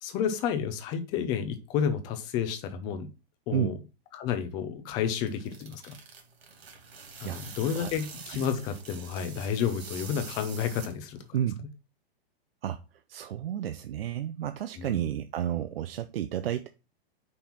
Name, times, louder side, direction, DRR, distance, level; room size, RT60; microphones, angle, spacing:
voice 1, 0.0-3.1 3.5-3.8 4.1-5.9 7.2-11.2 14.8-15.1, left 8 dB, 15° left, 9 dB, 0.5 m, -31 dB
sound 1, 4.9-11.3, right 5 dB, 85° right, 2.7 m, -45 dB
voice 2, 11.3-11.7 12.6-12.8 13.1-16.7, right 10 dB, 70° right, 9 dB, 0.7 m, -31 dB
5.4 x 4.4 x 5.7 m, 0.30 s
hypercardioid pair, 165°, 31 cm